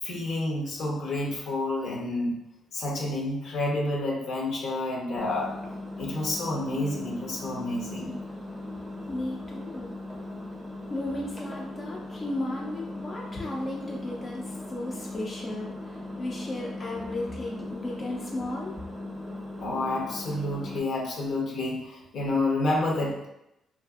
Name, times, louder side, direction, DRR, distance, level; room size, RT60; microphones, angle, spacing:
voice 1, 0.0-2.3 2.7-5.5 6.0-8.2 19.6-23.3, left 2 dB, 70° left, -1 dB, 0.7 m, -29 dB
Engine, 5.2-20.8, left 2 dB, 5° right, 0.7 m, -39 dB
voice 2, 9.1-9.9 10.9-18.7, left 1 dB, 35° left, -2 dB, 0.4 m, -35 dB
2.5 x 2.5 x 2.3 m, 0.85 s
cardioid pair, 90°, 0 cm